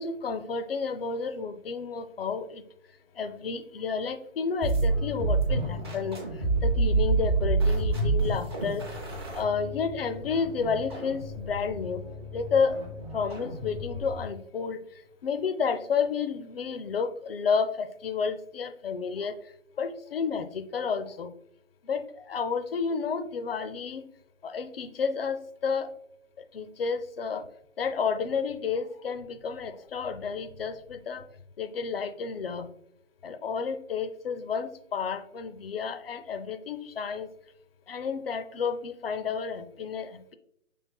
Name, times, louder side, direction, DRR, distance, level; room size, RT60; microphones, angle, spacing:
voice 1, 0.0-2.6 3.2-6.2 6.6-8.9 9.3-12.0 12.3-12.8 13.1-14.8 15.2-19.4 19.8-21.4 21.8-24.0 24.4-25.9 26.5-27.4 27.8-31.2 31.6-32.7 33.2-37.3 37.9-40.3, left 5 dB, 50° left, 10 dB, 0.4 m, -31 dB
sound 1, 4.6-14.3, right 3 dB, 20° right, 0.6 m, -29 dB
5.4 x 3.2 x 2.2 m, 0.72 s
hypercardioid pair, 150°, 38 cm